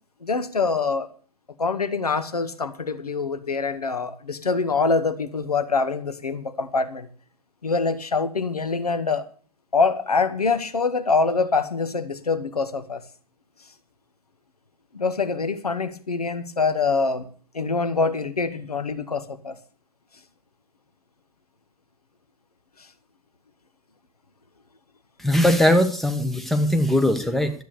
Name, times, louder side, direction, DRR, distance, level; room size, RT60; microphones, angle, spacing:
voice 1, 0.2-1.1 1.6-7.1 7.6-9.3 9.7-13.0 14.9-17.3 17.5-19.6, left 4 dB, 80° left, 11 dB, 1.1 m, -24 dB
voice 2, 25.2-27.5, left 1 dB, ahead, 7 dB, 1.3 m, -20 dB
12.0 x 8.4 x 6.7 m, 0.43 s
figure-of-eight pair, 95°, 19 cm